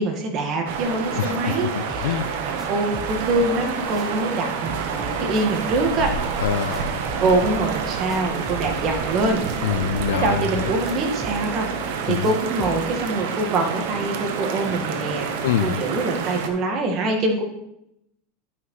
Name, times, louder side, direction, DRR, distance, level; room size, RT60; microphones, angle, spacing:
voice 1, 0.0-6.1 7.2-9.4 10.1-15.3 15.6-17.4, right 2 dB, 40° right, 1.6 m, -24 dB
sound 1, 0.7-16.5, right 6 dB, 70° right, 1.0 m, -28 dB
voice 2, 1.2-2.3 6.4-7.0 9.6-10.7 12.1-12.3 15.4-15.8, left 10 dB, 85° left, 0.4 m, -25 dB
sound 2, 1.9-4.4 4.6-9.9 10.2-13.0, right 1 dB, 10° right, 1.0 m, -40 dB
11.5 x 5.6 x 3.2 m
supercardioid pair, 130°, 0 cm